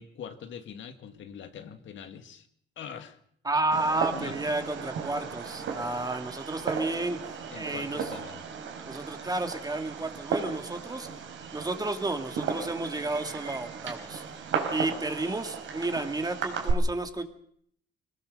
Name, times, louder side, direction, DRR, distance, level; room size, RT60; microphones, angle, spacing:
voice 1, 0.0-2.5 2.8-3.2 4.1-4.4 7.5-8.4, left 7 dB, 70° left, 8 dB, 1.9 m, -43 dB
voice 2, 3.4-7.2 7.5-8.1 8.9-11.1 11.5-14.2 14.7-17.2, right 2 dB, 20° right, 6 dB, 2.3 m, -31 dB
Fireworks, 3.7-16.7, right 6 dB, 75° right, 4.1 m, -35 dB
22.5 x 19.0 x 6.6 m, 0.66 s
cardioid pair, 90°, 20 cm